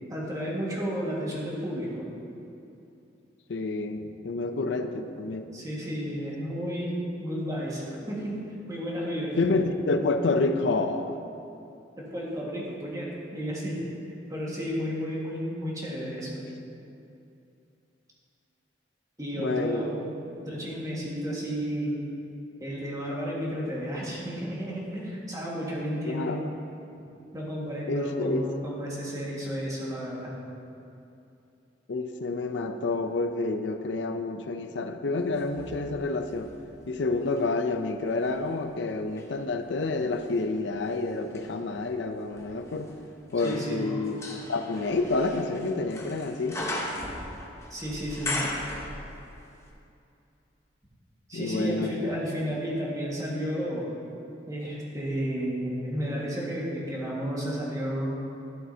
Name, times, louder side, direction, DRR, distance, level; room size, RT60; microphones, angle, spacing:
voice 1, 0.1-2.0 4.8-9.4 12.0-13.8 14.3-16.4 19.2-20.0 20.4-21.9 22.6-26.4 27.3-30.3 43.4-43.9 47.7-48.4 51.3-53.9 54.5-58.2, equal, 20° right, -5 dB, 1.7 m, -32 dB
voice 2, 3.5-5.5 9.4-11.2 19.4-19.9 26.0-26.4 27.9-28.5 31.9-36.5 36.9-42.9 43.3-44.2 44.5-46.6 51.3-52.1, left 3 dB, 75° left, 8 dB, 0.5 m, -29 dB
sound 1, 35.3-37.5 38.1-49.4 49.7-49.8, left 1 dB, 15° left, 0.9 m, -39 dB
12.5 x 7.5 x 2.8 m, 2.7 s
head